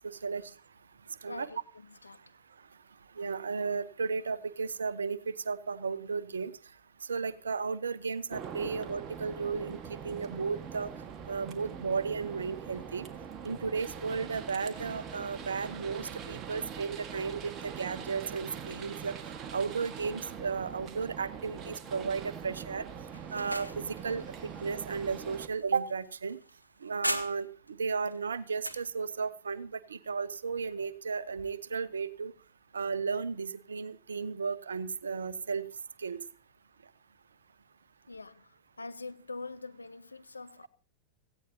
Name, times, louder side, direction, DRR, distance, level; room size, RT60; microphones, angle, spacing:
voice 1, 0.0-0.5 1.2-1.5 3.2-6.5 7.0-10.9 11.3-13.1 13.4-19.1 19.5-22.8 23.3-26.4 26.8-32.3 32.7-35.7 36.0-36.2, right 5 dB, 70° right, 0.9 m, -34 dB
voice 2, 1.3-2.2 38.1-40.7, left 3 dB, 80° left, 0.7 m, -44 dB
sound 1, 8.3-25.5, right 7 dB, 30° right, 1.7 m, -43 dB
sound 2, 23.1-27.7 28.1-28.9, equal, 90° right, 1.2 m, -40 dB
17.0 x 15.5 x 2.9 m
figure-of-eight pair, 90°, 0 cm